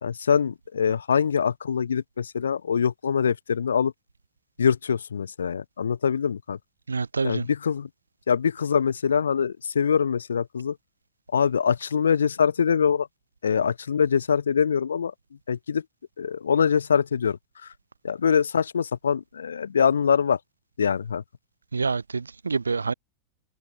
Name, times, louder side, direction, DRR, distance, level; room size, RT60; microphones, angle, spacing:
voice 1, 0.0-3.9 4.6-6.6 7.2-7.9 8.3-10.8 11.3-13.1 13.4-15.1 15.5-15.8 16.2-17.7 18.0-20.4 20.8-21.2, left 7 dB, 70° left, 1.4 m, -24 dB
voice 2, 6.9-7.4 21.7-22.9, right 4 dB, 75° right, 2.1 m, -27 dB
figure-of-eight pair, 90°, 0 cm